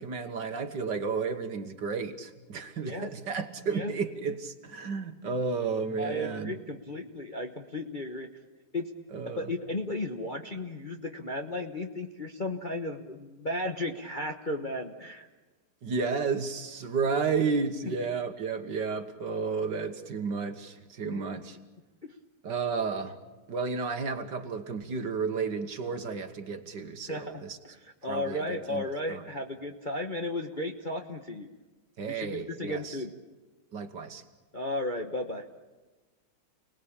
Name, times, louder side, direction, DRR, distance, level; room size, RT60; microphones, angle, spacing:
voice 1, 0.0-6.5 9.1-9.5 15.8-21.6 22.4-23.2 23.5-27.6 28.0-29.2 32.0-33.0 33.7-34.2, right 5 dB, 55° right, 8 dB, 2.0 m, -32 dB
voice 2, 2.8-3.1 3.7-3.9 6.0-8.3 8.7-8.9 9.4-15.3 17.9-18.0 21.1-21.2 22.0-22.1 27.1-31.5 32.1-33.1 34.5-35.4, left 1 dB, 30° left, 3 dB, 1.1 m, -34 dB
29.5 x 19.5 x 8.8 m, 1.2 s
omnidirectional pair, 2.3 m